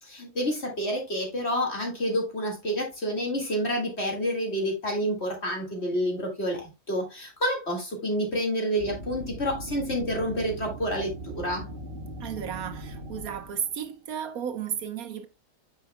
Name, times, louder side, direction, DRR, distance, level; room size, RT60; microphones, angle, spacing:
voice 1, 0.0-11.7, equal, 40° left, 2.3 m, -29 dB
sound 1, 8.8-13.8, right 2 dB, 35° right, 1.7 m, -39 dB
voice 2, 12.2-15.3, right 9 dB, 65° right, 1.3 m, -33 dB
9.4 x 6.4 x 2.2 m
omnidirectional pair, 1.7 m